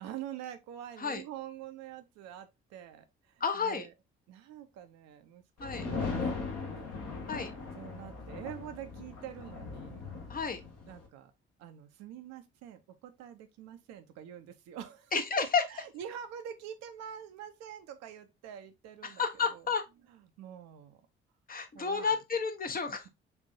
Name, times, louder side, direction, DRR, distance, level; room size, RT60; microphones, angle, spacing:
voice 1, 0.0-3.9 4.3-7.0 7.7-10.0 10.9-11.3 11.6-19.2 19.5-19.7 20.1-21.0 21.7-22.2, right 10 dB, 55° right, 0.7 m, -46 dB
voice 2, 3.4-3.9 5.6-5.9 7.3-7.5 10.3-10.6 15.1-15.6 19.0-19.9 21.5-23.1, left 5 dB, 30° left, 0.8 m, -31 dB
sound 1, 5.6-11.1, left 4 dB, 55° left, 1.3 m, -39 dB
6.8 x 2.7 x 2.6 m
figure-of-eight pair, 40°, 31 cm